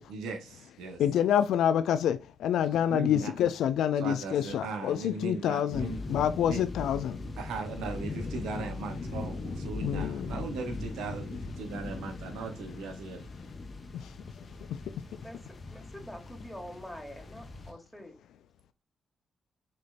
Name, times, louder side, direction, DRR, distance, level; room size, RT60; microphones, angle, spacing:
voice 1, 0.1-1.0 2.9-3.3 4.0-6.0 6.5-6.6 7.4-13.3, right 4 dB, 80° right, 0.7 m, -38 dB
voice 2, 1.0-7.2 9.8-10.3 13.9-14.0, left 9 dB, 80° left, 0.3 m, -27 dB
sound 1, 5.7-17.7, left 3 dB, 50° left, 0.9 m, -40 dB
voice 3, 15.1-18.2, left 1 dB, ahead, 1.5 m, -45 dB
5.9 x 3.2 x 2.3 m
hypercardioid pair, 40°, 0 cm